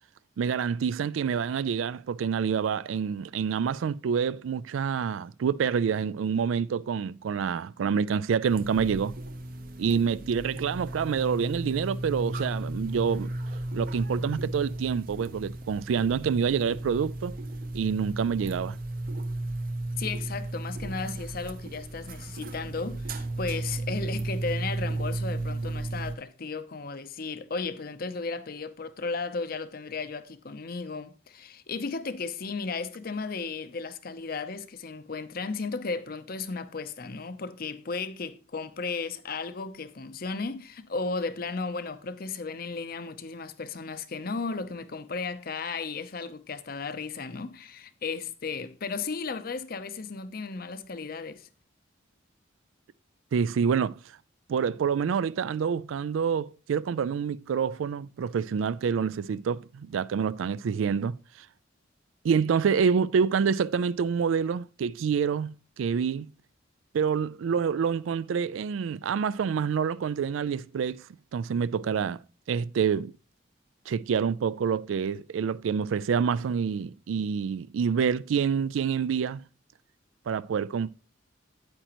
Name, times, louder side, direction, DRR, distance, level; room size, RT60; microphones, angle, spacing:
voice 1, 0.4-9.1 9.8-13.3 13.7-17.3 17.7-18.8 53.3-54.0 54.5-61.2 62.2-66.3 66.9-71.0 71.3-72.2 72.5-73.1 73.9-79.4 80.3-80.9, right 6 dB, 80° right, 0.3 m, -27 dB
sound 1, 8.5-26.2, right 2 dB, 45° right, 0.6 m, -34 dB
voice 2, 20.0-51.5, left 4 dB, 50° left, 0.6 m, -35 dB
9.0 x 8.8 x 3.0 m
head